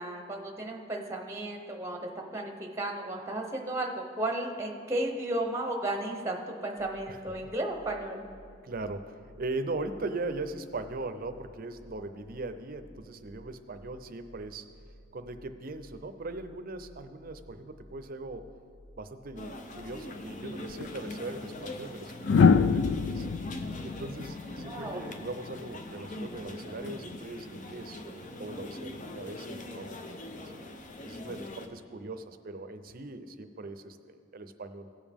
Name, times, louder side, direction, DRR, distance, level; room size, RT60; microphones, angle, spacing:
voice 1, 0.0-8.2 24.7-25.0, right 1 dB, 15° right, 2 dB, 0.8 m, -34 dB
sound 1, 6.8-20.1, equal, 85° left, 3.0 m, -55 dB
voice 2, 7.1-7.5 8.6-14.7 15.1-18.5 19.0-23.3 23.8-30.2 31.0-34.9, right 2 dB, 50° right, 9 dB, 0.6 m, -40 dB
sound 2, 19.4-31.7, left 1 dB, 40° left, 0.7 m, -42 dB
sound 3, 20.7-20.9 22.2-25.3 26.9-27.2, left 5 dB, 65° left, 0.3 m, -25 dB
17.5 x 7.1 x 3.6 m, 2.3 s
head